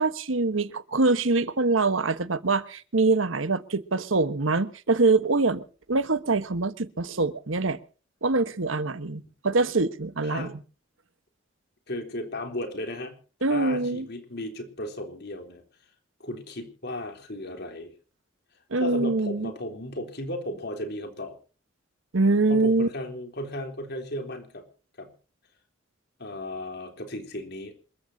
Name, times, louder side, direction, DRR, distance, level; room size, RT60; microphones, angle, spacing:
voice 1, 0.0-7.8 8.2-10.6 13.4-14.1 18.7-19.5 22.1-22.9, right 3 dB, 90° right, 1.3 m, -24 dB
voice 2, 10.2-10.6 11.9-13.2 13.5-15.6 16.2-17.9 18.8-21.4 22.5-24.6 25.0-25.1 26.2-27.7, left 1 dB, 55° left, 3.6 m, -35 dB
27.0 x 14.5 x 2.8 m
head